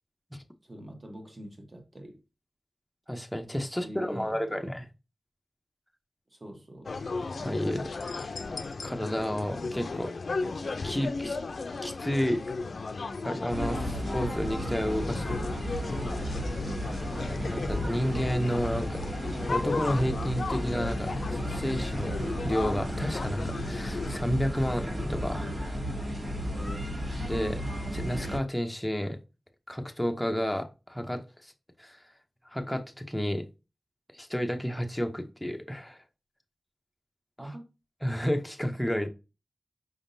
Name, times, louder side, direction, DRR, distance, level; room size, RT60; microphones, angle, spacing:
voice 1, 0.6-2.2 3.7-4.7 6.3-6.9 16.5-17.0 26.5-27.0 37.4-37.7, right 1 dB, 30° right, 1.1 m, -44 dB
voice 2, 3.1-4.8 7.4-8.3 8.6-10.1 10.8-11.4 11.8-12.4 13.2-15.4 17.4-25.6 27.2-27.6 27.9-29.2 29.7-31.5 31.8-32.0 32.5-33.5 34.1-36.0 38.0-39.1, equal, 5° left, 0.7 m, -31 dB
sound 1, 6.9-24.2, left 3 dB, 70° left, 0.4 m, -36 dB
sound 2, 13.5-28.4, equal, 60° right, 2.2 m, -33 dB
5.1 x 3.6 x 2.6 m
wide cardioid pair, 105°, 0 cm